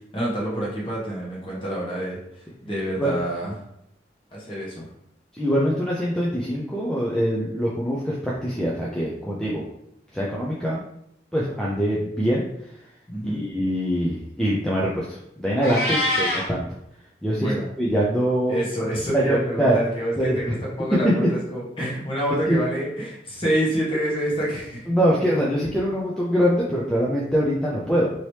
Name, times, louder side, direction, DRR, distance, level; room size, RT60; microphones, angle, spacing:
voice 1, 0.1-2.2 2.6-3.5 4.3-4.8 13.1-13.4 15.9-16.0 17.3-17.7 18.5-24.9, equal, 30° left, -6 dB, 1.1 m, -27 dB
voice 2, 5.4-9.6 10.1-10.8 11.3-12.5 13.3-16.7 17.2-17.5 17.8-18.6 19.1-19.8 20.2-20.4 21.0-21.1 22.5-22.6 24.9-28.1, equal, 5° left, -6 dB, 0.4 m, -23 dB
Meow, 15.6-16.5, left 1 dB, 60° left, 0.8 m, -24 dB
3.0 x 2.8 x 3.1 m, 0.77 s
head